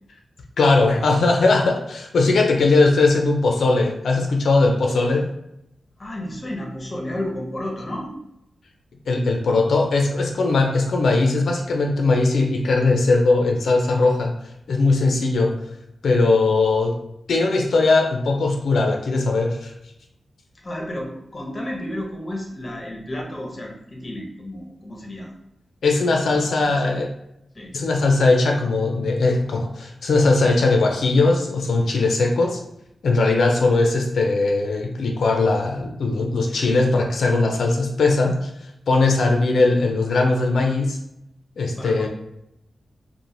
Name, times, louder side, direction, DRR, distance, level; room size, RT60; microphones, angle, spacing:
voice 1, 0.6-5.3 9.1-14.3 14.7-15.6 16.0-17.0 17.3-19.7 25.8-27.1 27.7-32.6 33.0-41.0 41.6-42.1, left 3 dB, 85° left, 2 dB, 0.4 m, -19 dB
voice 2, 6.0-8.1 20.6-25.3 26.3-26.6 26.8-27.0 27.5-27.7 41.8-42.1, left 1 dB, 30° left, -1 dB, 0.6 m, -32 dB
3.0 x 2.1 x 2.5 m, 0.82 s
wide cardioid pair, 135°, 0 cm